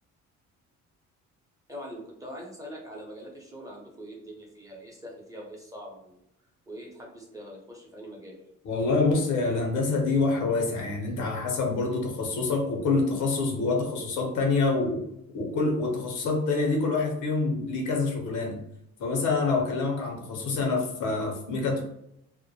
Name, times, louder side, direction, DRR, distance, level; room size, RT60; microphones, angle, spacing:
voice 1, 1.7-6.2 6.7-8.4, equal, 10° right, -2 dB, 0.7 m, -43 dB
voice 2, 8.6-15.1 15.3-18.6 19.0-21.8, left 3 dB, 85° left, 1 dB, 0.7 m, -26 dB
2.1 x 2.1 x 2.7 m, 0.77 s
cardioid pair, 90°, 30 cm